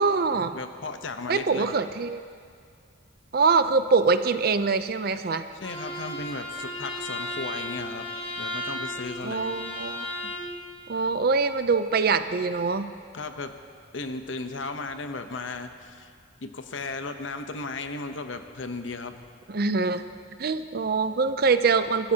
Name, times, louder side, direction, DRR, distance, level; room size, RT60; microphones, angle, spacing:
voice 1, 0.0-0.6 1.3-2.2 3.3-5.4 9.2-10.1 10.9-12.9 19.5-20.0 20.4-22.1, right 4 dB, 50° right, 11 dB, 0.6 m, -24 dB
voice 2, 0.5-1.8 5.6-8.0 8.4-9.5 13.1-13.5 13.9-16.1 16.4-19.2, left 3 dB, 85° left, 7 dB, 0.9 m, -35 dB
Bowed string instrument, 5.6-10.5, left 1 dB, 30° left, 1.7 m, -34 dB
24.0 x 14.0 x 2.9 m, 2.2 s
head